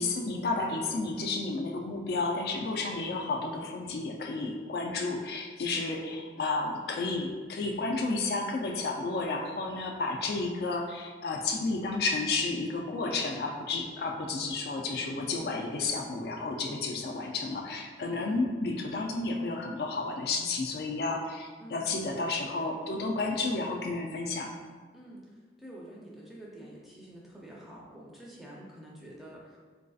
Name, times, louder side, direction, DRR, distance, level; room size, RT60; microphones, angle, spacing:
voice 1, 0.0-24.5, left 3 dB, 60° left, 2 dB, 0.3 m, -32 dB
voice 2, 21.6-22.0 22.3-22.7 24.9-29.6, right 1 dB, ahead, -5 dB, 0.5 m, -48 dB
4.0 x 2.6 x 2.3 m, 1.5 s
head